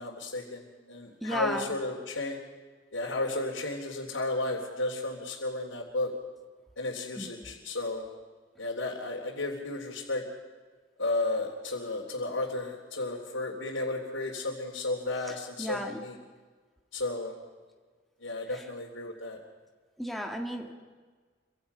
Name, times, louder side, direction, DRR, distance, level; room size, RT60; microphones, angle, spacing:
voice 1, 0.0-2.4 2.9-6.1 6.8-8.0 8.6-10.2 11.0-16.1 16.9-17.3 18.2-19.4, left 2 dB, 85° left, -3 dB, 3.5 m, -33 dB
voice 2, 1.2-1.7 7.2-7.3 15.3-16.0 18.5-18.7 20.0-20.7, equal, ahead, 1 dB, 1.9 m, -34 dB
29.5 x 25.0 x 5.7 m, 1.5 s
head